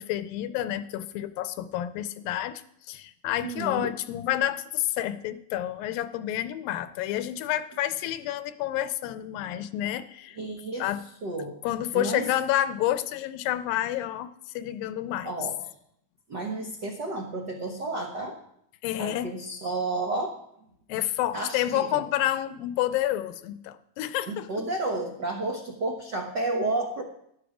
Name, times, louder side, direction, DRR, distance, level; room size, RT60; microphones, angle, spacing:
voice 1, 0.0-2.6 2.9-10.4 10.8-11.0 11.6-15.3 18.8-19.3 20.9-24.7, left 12 dB, 80° left, 12 dB, 2.3 m, -29 dB
voice 2, 3.4-3.9 10.4-10.9 11.2-11.6 11.9-12.3 15.2-15.5 16.3-18.4 19.0-20.3 21.3-22.0 24.3-27.0, right 2 dB, 85° right, 1 dB, 0.9 m, -31 dB
12.0 x 12.0 x 4.9 m, 0.74 s
omnidirectional pair, 4.1 m